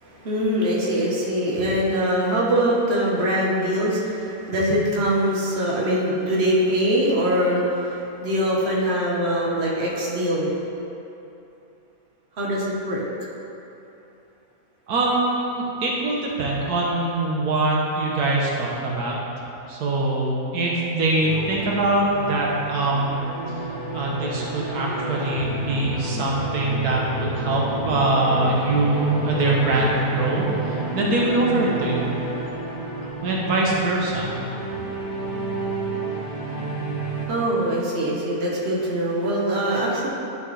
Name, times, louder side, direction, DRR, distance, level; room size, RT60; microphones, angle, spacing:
voice 1, 0.0-10.6 12.4-13.3 37.3-40.1, equal, 45° right, -5 dB, 1.4 m, -23 dB
voice 2, 14.9-19.2 19.7-23.3 23.9-32.1 33.2-34.3, right 2 dB, 85° right, -3 dB, 1.6 m, -23 dB
sound 1, 21.2-37.3, right 2 dB, 70° right, 1.8 m, -30 dB
11.5 x 5.2 x 3.3 m, 2.8 s
omnidirectional pair, 1.6 m